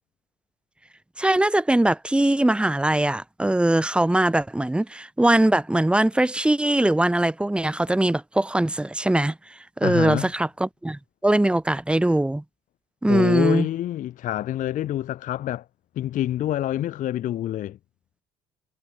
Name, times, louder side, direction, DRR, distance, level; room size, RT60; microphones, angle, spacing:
voice 1, 1.2-9.4 9.8-12.4 13.0-13.7, right 1 dB, 5° right, 0.8 m, -21 dB
voice 2, 9.8-10.3 13.1-15.7 16.0-17.8, left 12 dB, 50° left, 0.5 m, -27 dB
hypercardioid pair, 65°, 17 cm